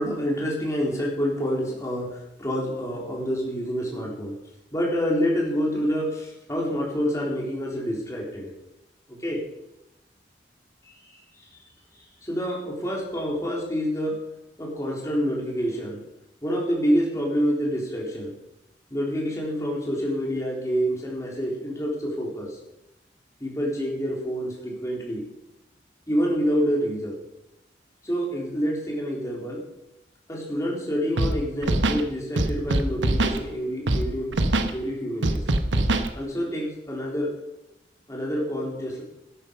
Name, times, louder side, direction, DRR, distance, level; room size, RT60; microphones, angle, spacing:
voice 1, 0.0-4.4 4.7-8.5 9.1-9.4 10.8-11.5 12.2-14.2 14.6-16.1 16.4-18.3 18.9-22.6 23.4-25.3 26.1-27.2 28.0-29.6 30.3-34.4 34.7-35.4 36.1-37.4 38.1-39.0, equal, 15° left, -2 dB, 3.7 m, -27 dB
Scratching (performance technique), 31.2-31.3 31.6-32.0 32.4-33.4 33.9-34.0 34.3-34.7 35.2-36.1, right 2 dB, 85° right, 1.1 m, -22 dB
12.5 x 11.0 x 5.3 m, 0.92 s
head